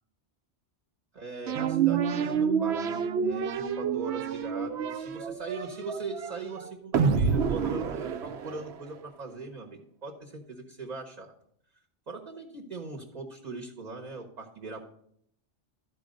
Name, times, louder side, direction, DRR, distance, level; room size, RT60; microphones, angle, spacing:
voice 1, 1.1-11.3 12.1-14.9, right 3 dB, 40° right, 2 dB, 1.0 m, -40 dB
sound 1, 1.5-9.0, right 6 dB, 70° right, 0.9 m, -28 dB
12.0 x 4.7 x 5.1 m, 0.68 s
omnidirectional pair, 1.2 m